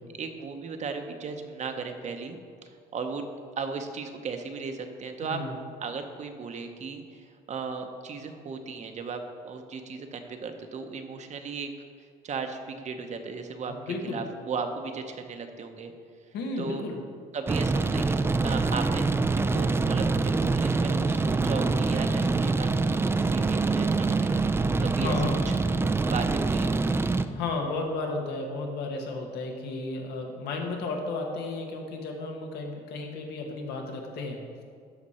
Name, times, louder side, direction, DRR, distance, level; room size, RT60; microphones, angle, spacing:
voice 1, 0.2-3.2 3.6-5.4 5.8-11.7 12.2-15.9 16.6-16.8 17.3-24.5 24.8-25.1 25.5-25.7 26.1-26.8, right 5 dB, 45° right, 6 dB, 0.8 m, -36 dB
voice 2, 5.2-5.6 13.7-14.2 16.3-17.0 24.8-25.5 27.3-34.6, left 3 dB, 80° left, 2 dB, 1.4 m, -33 dB
sound 1, 17.5-27.3, right 3 dB, 15° right, 0.3 m, -25 dB
12.5 x 5.1 x 4.3 m, 2.1 s
cardioid pair, 110°, 17 cm